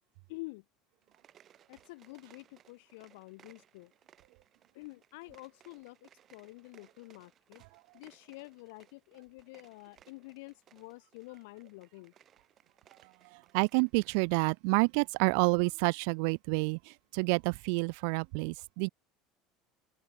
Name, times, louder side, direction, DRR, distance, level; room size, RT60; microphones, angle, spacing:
voice 1, 0.3-0.6 1.7-3.9 4.7-7.6 7.9-12.1, left 25 dB, 80° left, 3.6 m, -48 dB
sound 1, 1.0-14.2, right 10 dB, 30° right, 4.7 m, -64 dB
voice 2, 13.3-18.9, right 40 dB or more, 65° right, 0.4 m, -29 dB
open air
cardioid pair, 160°, 0 cm